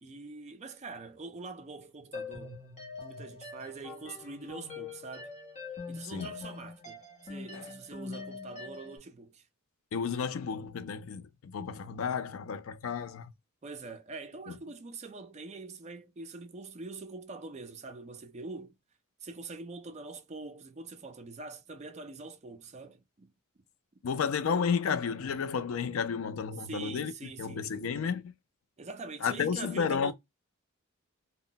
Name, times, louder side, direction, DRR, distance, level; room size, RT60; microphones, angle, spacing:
voice 1, 0.0-2.6 3.0-5.3 5.9-9.5 13.6-18.8 19.2-23.3 26.6-28.0 28.8-30.1, right 3 dB, 30° right, 0.4 m, -44 dB
sound 1, 2.1-9.0, left 4 dB, 35° left, 0.8 m, -43 dB
voice 2, 9.9-13.3 24.0-27.1 27.4-28.3 29.2-30.1, left 6 dB, 70° left, 0.4 m, -32 dB
2.1 x 2.1 x 3.7 m
head